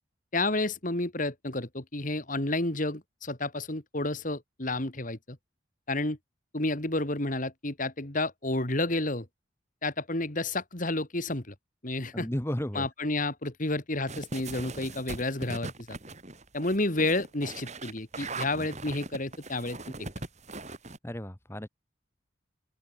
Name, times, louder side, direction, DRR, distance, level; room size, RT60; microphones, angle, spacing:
voice 1, 0.3-5.4 5.9-6.2 6.5-9.3 9.8-11.5 11.8-12.3 12.7-16.0 16.5-19.8, left 2 dB, 40° left, 2.7 m, -30 dB
voice 2, 12.1-12.9 21.0-21.7, equal, 15° left, 1.4 m, -33 dB
sound 1, 14.1-21.0, right 3 dB, 35° right, 3.9 m, -40 dB
open air
head